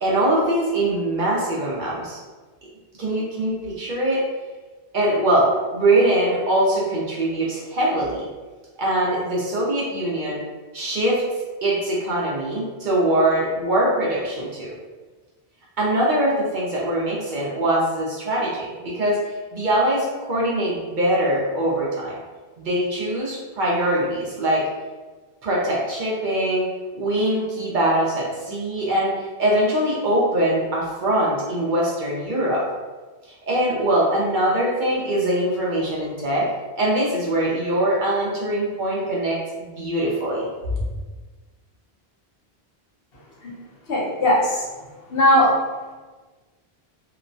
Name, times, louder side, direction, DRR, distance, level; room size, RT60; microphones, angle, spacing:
voice 1, 0.0-2.2 3.0-4.2 4.9-8.3 8.8-10.4 10.7-11.2 11.6-14.7 15.8-22.2 22.6-24.7 25.4-26.6 27.0-32.7 33.5-36.5 36.8-40.5, right 1 dB, 55° right, -5 dB, 0.7 m, -22 dB
voice 2, 43.9-44.6 45.1-45.5, left 1 dB, 65° left, -5 dB, 0.9 m, -18 dB
2.9 x 2.1 x 2.6 m, 1.3 s
omnidirectional pair, 1.1 m